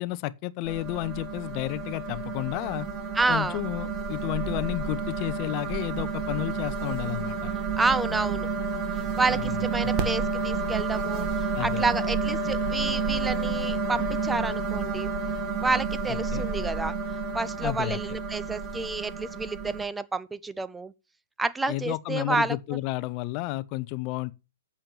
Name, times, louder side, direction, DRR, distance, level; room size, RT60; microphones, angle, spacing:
voice 1, 0.0-2.9 3.3-7.5 9.3-9.6 11.5-11.9 16.1-16.5 17.6-18.2 21.7-24.3, left 18 dB, 40° left, 0.7 m, -32 dB
sound 1, 0.7-19.9, right 4 dB, 30° right, 2.0 m, -30 dB
voice 2, 3.2-3.6 7.8-8.5 9.2-15.1 15.6-17.0 17.3-20.9 21.4-22.6, right 3 dB, 10° right, 0.6 m, -29 dB
8.7 x 7.1 x 7.4 m
hypercardioid pair, 120°, 0 cm